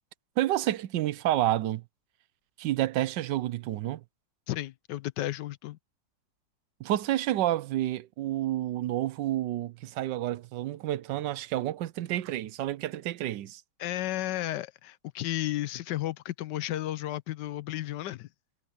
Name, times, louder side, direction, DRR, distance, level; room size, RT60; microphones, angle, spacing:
voice 1, 0.4-1.8 2.6-4.0 6.8-13.6, right 14 dB, 80° right, 1.3 m, -29 dB
voice 2, 4.5-5.8 13.8-18.3, left 14 dB, 80° left, 1.3 m, -33 dB
omnidirectional pair, 1.9 m